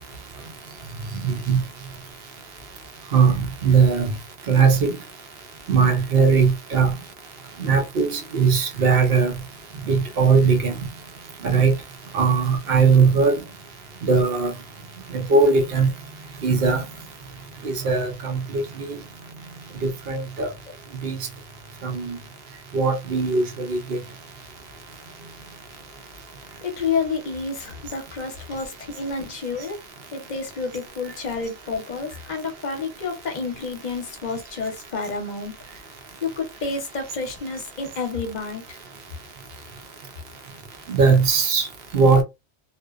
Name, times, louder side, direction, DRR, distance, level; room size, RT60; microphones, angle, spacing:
voice 1, 1.2-1.6 3.1-4.1 4.5-5.0 5.7-7.0 7.6-9.3 9.9-10.7 11.4-11.7 12.1-13.4 14.1-14.5 15.1-15.9 16.4-16.8 17.6-19.0 19.8-20.5 21.0-21.2 21.8-22.2 22.7-24.0 40.9-41.7 41.9-42.2, right 5 dB, 65° right, 0.9 m, -19 dB
voice 2, 26.6-29.8 30.1-35.5 36.2-38.8, left 4 dB, 45° left, 0.8 m, -29 dB
2.6 x 2.1 x 2.3 m
omnidirectional pair, 1.1 m